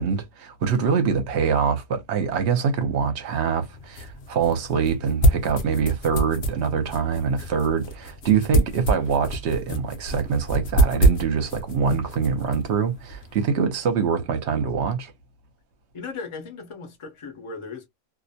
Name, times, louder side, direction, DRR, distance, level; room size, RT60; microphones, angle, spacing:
voice 1, 0.0-15.1, right 6 dB, 65° right, 0.9 m, -24 dB
sound 1, 3.4-13.4, right 2 dB, 60° left, 0.9 m, -26 dB
voice 2, 15.9-17.9, left 4 dB, 30° left, 0.6 m, -37 dB
2.5 x 2.1 x 2.6 m
omnidirectional pair, 1.3 m